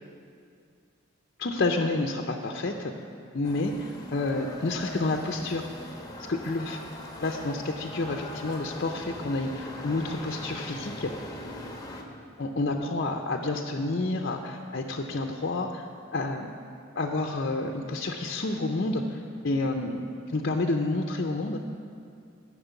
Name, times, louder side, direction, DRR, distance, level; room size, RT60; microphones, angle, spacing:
voice 1, 1.4-2.9 3.3-5.7 6.3-6.8 7.2-11.1 12.4-16.5 17.0-21.6, left 2 dB, 50° left, 2 dB, 0.6 m, -29 dB
sound 1, 3.4-12.0, left 1 dB, 20° left, 1.0 m, -41 dB
12.5 x 6.1 x 8.2 m, 2.3 s
head